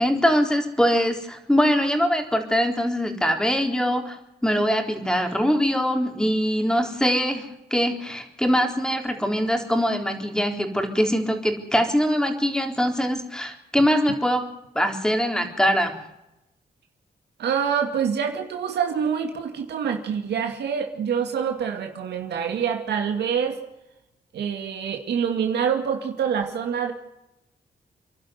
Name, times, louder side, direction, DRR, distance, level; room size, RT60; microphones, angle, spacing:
voice 1, 0.0-14.4 14.7-15.9, equal, 5° left, 4 dB, 4.0 m, -23 dB
voice 2, 17.4-23.6 24.3-26.9, right 7 dB, 90° right, 4 dB, 2.3 m, -26 dB
28.5 x 12.0 x 9.5 m, 0.91 s
cardioid pair, 90°, 17 cm